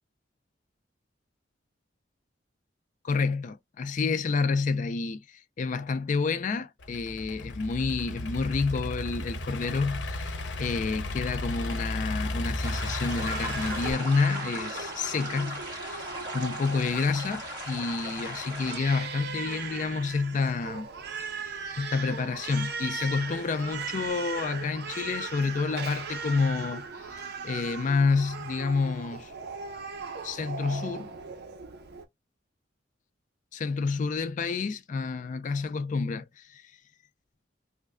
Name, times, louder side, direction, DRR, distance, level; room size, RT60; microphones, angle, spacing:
voice 1, 3.0-16.0 16.3-20.9 21.2-29.3 30.2-31.1 33.5-36.6, left 4 dB, 40° left, 0.3 m, -29 dB
Idling / Accelerating revving vroom, 6.8-13.9, left 1 dB, 75° left, 0.7 m, -34 dB
sound 1, 12.6-18.8, equal, 25° right, 2.0 m, -38 dB
Crying sobbing, 13.3-32.1, right 5 dB, 60° right, 0.7 m, -39 dB
3.1 x 2.2 x 3.5 m
head